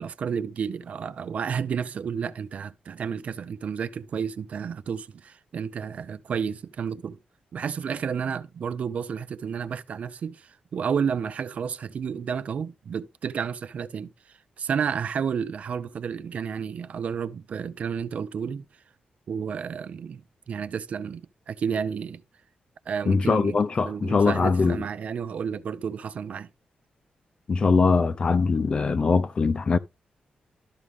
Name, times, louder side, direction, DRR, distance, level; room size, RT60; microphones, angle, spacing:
voice 1, 0.0-7.2 7.5-18.7 19.3-22.2 22.9-26.5, right 7 dB, 55° right, 0.6 m, -31 dB
voice 2, 23.1-24.8 27.5-29.8, left 4 dB, 35° left, 0.5 m, -22 dB
12.5 x 6.2 x 3.5 m
wide cardioid pair, 170°, 3 cm